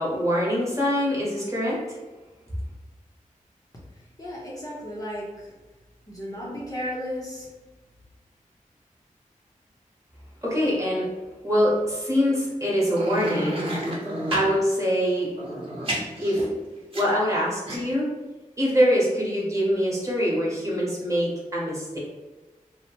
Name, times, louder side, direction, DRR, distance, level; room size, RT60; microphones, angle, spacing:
voice 1, 0.0-2.0 10.4-11.1 11.4-13.6 14.3-15.3 16.2-16.5 16.9-18.1 18.6-22.0, equal, 20° right, -6 dB, 1.2 m, -24 dB
voice 2, 4.2-5.5 6.1-7.5, equal, 25° left, -5 dB, 0.7 m, -34 dB
sound 1, 12.9-14.5 15.3-17.3 17.7-17.8, equal, 40° right, 0.9 m, -31 dB
2.9 x 2.0 x 2.9 m, 1.2 s
cardioid pair, 45°, 14 cm